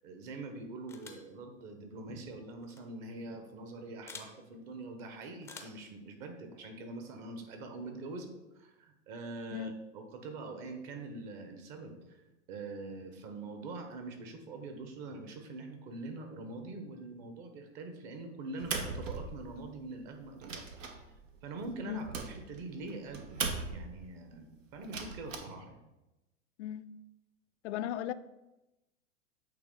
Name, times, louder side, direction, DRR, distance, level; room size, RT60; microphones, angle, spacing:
voice 1, 0.0-8.3 8.5-12.2 12.5-20.9 21.4-23.4 23.7-25.8, right 3 dB, 45° right, 1.4 m, -44 dB
sound 1, 0.9-1.3 2.6-2.8 4.1-4.3 5.4-5.9, left 4 dB, 5° left, 0.4 m, -48 dB
sound 2, 18.6-19.8 20.2-24.0 24.8-25.4, right 4 dB, 85° right, 1.0 m, -39 dB
voice 2, 26.6-26.9 27.6-28.1, left 12 dB, 65° left, 0.5 m, -36 dB
8.4 x 3.4 x 3.9 m
hypercardioid pair, 110°, 38 cm